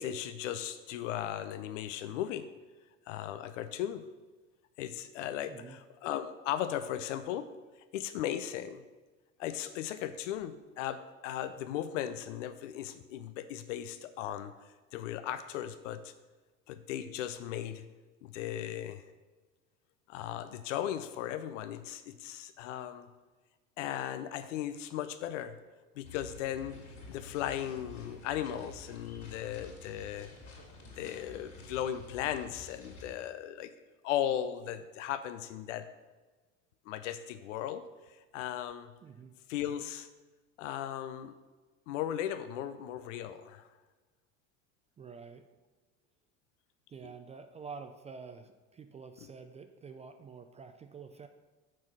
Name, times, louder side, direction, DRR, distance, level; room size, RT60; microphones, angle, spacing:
voice 1, 0.0-2.5 3.1-4.0 4.8-7.5 7.9-8.8 9.4-16.1 16.7-17.9 18.2-19.0 20.1-23.1 23.8-25.6 26.0-26.8 27.1-30.3 31.0-33.7 34.0-35.9 36.9-38.9 39.5-40.1 40.6-41.3 41.9-43.7, left 11 dB, 85° left, 11 dB, 0.5 m, -37 dB
voice 2, 5.5-5.8 39.0-39.4 45.0-45.5 46.9-51.3, right 5 dB, 20° right, 8 dB, 0.3 m, -48 dB
sound 1, 26.0-33.2, left 2 dB, 40° left, 2.3 m, -50 dB
5.9 x 4.5 x 6.1 m, 1.3 s
supercardioid pair, 100°, 36 cm